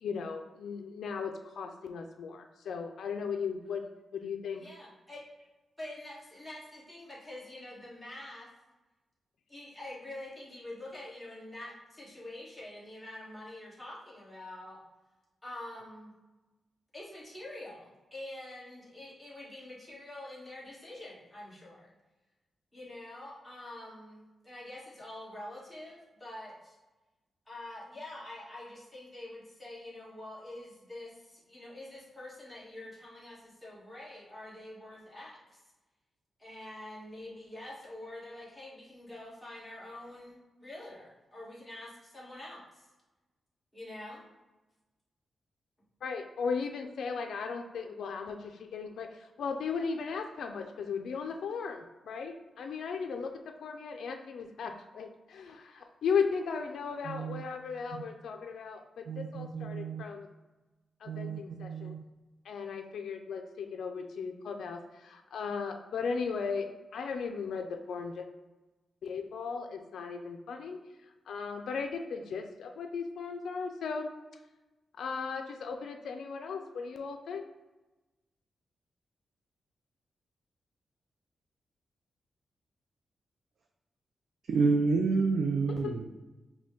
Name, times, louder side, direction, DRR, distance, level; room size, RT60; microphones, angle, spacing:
voice 1, 0.0-3.8 4.1-4.6 46.0-53.3 53.6-60.3 61.0-61.9 62.4-68.3 69.0-70.8 71.3-74.1 75.0-77.4 85.8-85.9, left 5 dB, 85° left, 4 dB, 0.4 m, -36 dB
voice 2, 4.5-5.2 5.8-8.5 9.5-14.8 15.4-16.1 16.9-21.9 22.7-26.8 27.5-35.6 36.4-42.6 43.7-44.2, left 1 dB, ahead, -7 dB, 1.5 m, -46 dB
voice 3, 57.1-57.4 59.1-60.0 61.1-62.0 84.5-86.1, right 4 dB, 70° right, 2 dB, 0.4 m, -30 dB
5.0 x 2.2 x 3.6 m, 1.1 s
wide cardioid pair, 120°, 0 cm